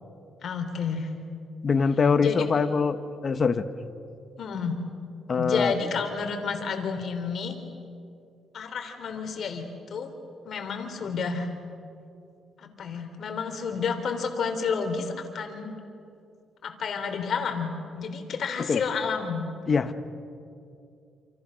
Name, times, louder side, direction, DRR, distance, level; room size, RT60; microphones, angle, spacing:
voice 1, 0.4-1.1 2.2-2.4 4.4-4.8 5.3-7.6 8.5-10.1 10.4-11.5 12.6-15.7 16.6-19.5, left 5 dB, 60° left, 6 dB, 3.5 m, -30 dB
voice 2, 1.6-3.0 3.2-3.7 5.3-5.7 18.7-18.8 19.7-19.9, left 5 dB, 40° left, 10 dB, 1.4 m, -23 dB
28.5 x 28.0 x 6.5 m, 2.5 s
cardioid pair, 95°, 0 cm